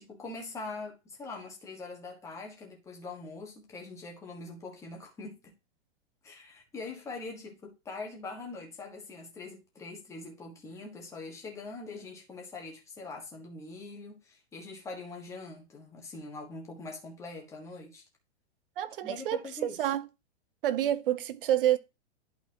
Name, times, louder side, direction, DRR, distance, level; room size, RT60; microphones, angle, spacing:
voice 1, 0.0-5.5 6.2-18.0 19.0-19.9, left 3 dB, 10° left, 1.4 m, -43 dB
voice 2, 18.8-20.1 20.6-21.8, right 12 dB, 55° right, 0.8 m, -28 dB
11.5 x 4.2 x 2.8 m
supercardioid pair, 175°, 34 cm